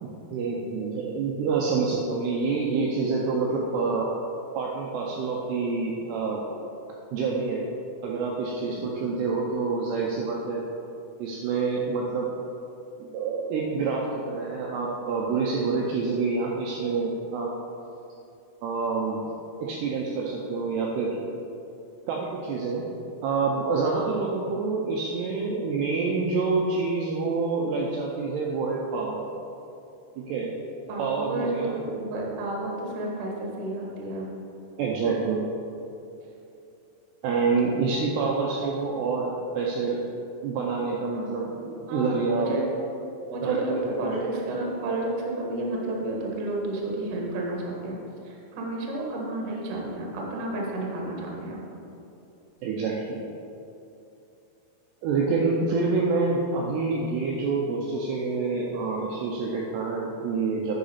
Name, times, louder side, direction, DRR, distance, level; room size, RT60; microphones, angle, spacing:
voice 1, 0.0-4.1 4.5-6.4 7.1-7.6 8.0-10.6 11.2-12.3 13.0-17.5 18.6-19.2 19.6-21.2 22.1-22.9 23.2-29.3 30.2-30.5 31.0-31.8 34.8-35.4 37.2-40.0 40.4-42.5 43.4-43.8 52.6-53.2 55.0-60.8, right 4 dB, 85° right, -2 dB, 2.4 m, -27 dB
voice 2, 30.9-34.3 41.1-41.4 41.9-42.6 43.3-48.0 48.2-51.6 55.7-55.8, right 1 dB, 65° right, -2 dB, 2.1 m, -31 dB
8.9 x 5.0 x 5.5 m, 2.8 s
omnidirectional pair, 5.6 m